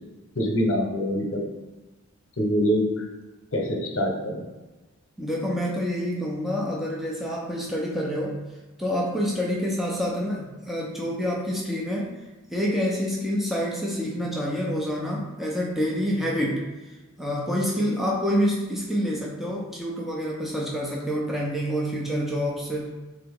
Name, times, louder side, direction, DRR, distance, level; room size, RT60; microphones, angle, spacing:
voice 1, 0.4-1.4 2.4-3.0 3.5-4.5, equal, 70° left, 1 dB, 0.9 m, -24 dB
voice 2, 5.2-8.4 8.8-12.1 12.5-16.7 17.2-22.9, equal, ahead, -4 dB, 0.6 m, -27 dB
3.8 x 2.9 x 3.6 m, 1.2 s
head